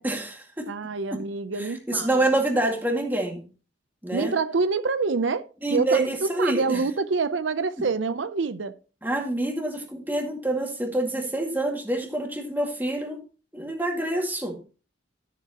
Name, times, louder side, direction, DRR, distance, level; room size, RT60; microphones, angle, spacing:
voice 1, 0.0-0.7 1.1-1.2 1.6-3.4 4.0-4.3 5.6-6.8 9.0-13.2 13.5-14.6, right 1 dB, 10° right, 2.1 m, -27 dB
voice 2, 0.7-2.2 4.1-6.1 6.4-8.8, right 4 dB, 85° right, 0.6 m, -26 dB
13.0 x 7.9 x 2.9 m
head